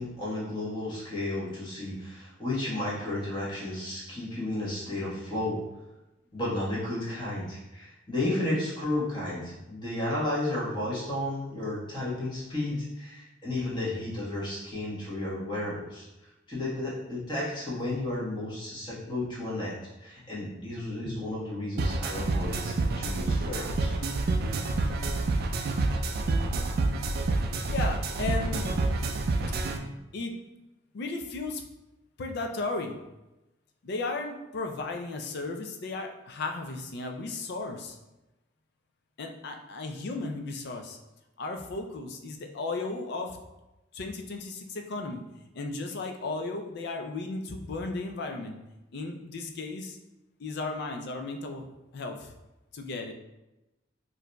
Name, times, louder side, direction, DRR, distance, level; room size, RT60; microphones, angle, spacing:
voice 1, 0.0-5.6 6.3-16.1 16.5-24.1, left 1 dB, 25° left, -7 dB, 1.2 m, -33 dB
sound 1, 21.8-29.8, right 2 dB, 55° right, 0.3 m, -28 dB
voice 2, 27.7-28.8 30.1-30.3 30.9-31.6 32.2-33.0 33.8-38.0 39.2-41.0 41.4-43.4 43.9-45.2 45.5-48.6 48.9-50.0 50.4-51.7 51.9-52.3 52.7-53.1, left 3 dB, 60° left, 4 dB, 0.4 m, -35 dB
4.6 x 2.6 x 2.2 m, 0.99 s
head